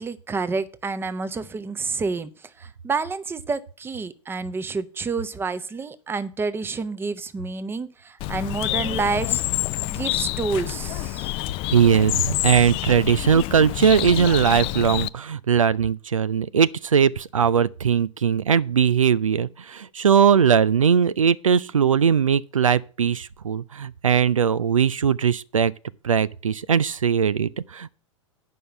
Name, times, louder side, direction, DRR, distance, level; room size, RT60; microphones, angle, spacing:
voice 1, 0.0-2.3 2.6-9.4 9.9-11.4, right 4 dB, 15° right, 0.8 m, -29 dB
Bird, 8.2-15.1, left 18 dB, 35° left, 0.4 m, -27 dB
voice 2, 11.7-25.7 26.0-28.0, right 7 dB, 85° right, 0.4 m, -20 dB
9.2 x 5.5 x 7.8 m
figure-of-eight pair, 95°, 16 cm